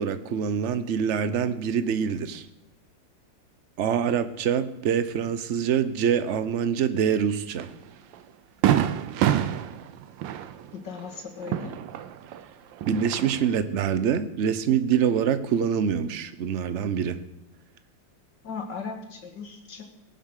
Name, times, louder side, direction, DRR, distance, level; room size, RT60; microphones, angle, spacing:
voice 1, 0.0-2.5 3.8-7.7 12.8-17.2, right 8 dB, 50° right, 12 dB, 0.9 m, -25 dB
Fireworks, 7.6-7.7 8.1-8.2 8.6-12.4 12.7-13.6, right 10 dB, 80° right, 1.4 m, -27 dB
voice 2, 10.7-11.8 18.4-19.8, left 5 dB, 65° left, 3 dB, 2.7 m, -37 dB
18.5 x 8.2 x 6.5 m, 0.89 s
omnidirectional pair, 2.0 m